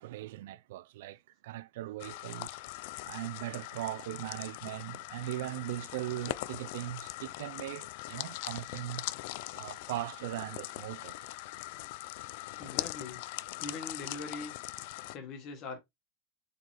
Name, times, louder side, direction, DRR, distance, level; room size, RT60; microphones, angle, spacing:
voice 1, 0.0-2.6 3.1-9.0 9.5-11.2, right 15 dB, 70° right, 0.3 m, -39 dB
sound 1, 2.0-15.2, left 18 dB, 65° left, 0.3 m, -41 dB
voice 2, 12.6-13.2 13.6-14.5 15.1-15.8, left 4 dB, 45° left, 2.0 m, -42 dB
4.1 x 3.9 x 3.0 m
hypercardioid pair, 115°, 0 cm